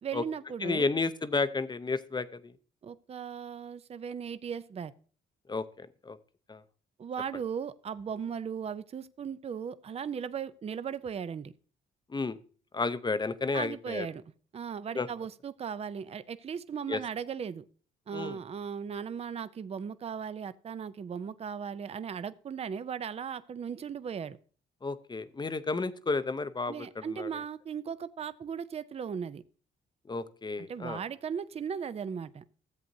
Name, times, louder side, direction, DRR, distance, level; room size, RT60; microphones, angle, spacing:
voice 1, 0.0-0.9 2.8-4.9 7.0-11.5 13.5-14.2 14.5-17.7 18.1-24.4 26.7-29.4 30.7-32.4, right 7 dB, 30° right, 0.5 m, -37 dB
voice 2, 0.6-2.5 5.5-6.2 6.5-6.6 12.1-12.4 12.7-14.1 14.9-15.1 16.9-17.0 18.1-18.4 24.8-27.4 30.1-31.0, left 3 dB, 20° left, 0.6 m, -32 dB
14.0 x 7.8 x 2.7 m
cardioid pair, 90°, 20 cm